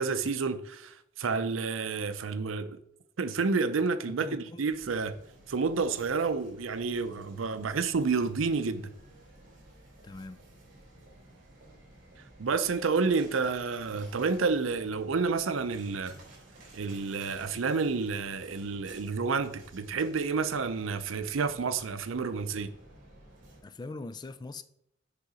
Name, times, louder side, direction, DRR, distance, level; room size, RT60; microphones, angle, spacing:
voice 1, 0.0-2.8 3.2-5.1 5.5-8.9 12.4-16.2 16.7-22.7, right 4 dB, 85° right, 0.6 m, -30 dB
voice 2, 4.1-4.7 10.0-10.4 23.6-24.6, left 3 dB, 20° left, 0.3 m, -41 dB
sound 1, 4.7-23.6, right 1 dB, 45° right, 3.0 m, -54 dB
6.7 x 4.9 x 4.9 m
head